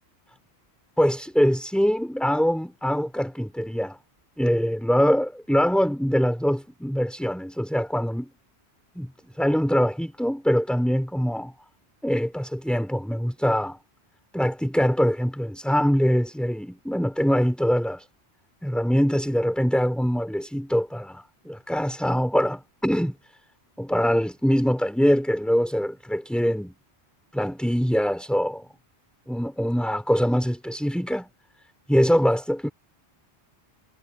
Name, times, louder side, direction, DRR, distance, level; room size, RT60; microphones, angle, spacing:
voice 1, 1.0-4.0 4.4-8.3 9.0-9.1 9.4-11.5 12.0-13.8 14.3-18.0 18.6-23.2 23.8-26.7 27.3-28.7 29.3-31.3 31.9-32.7, equal, ahead, 5.7 m, -23 dB
omnidirectional pair, 1.1 m